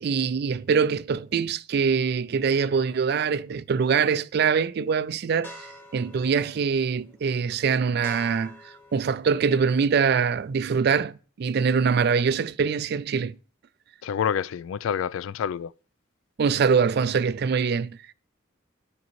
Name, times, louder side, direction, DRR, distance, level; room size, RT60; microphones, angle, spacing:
voice 1, 0.0-13.3 16.4-18.0, right 6 dB, 50° right, 0.3 m, -24 dB
sound 1, 5.4-10.5, left 1 dB, 10° left, 1.0 m, -48 dB
voice 2, 14.0-15.7, left 8 dB, 80° left, 0.3 m, -28 dB
12.0 x 5.3 x 3.1 m
head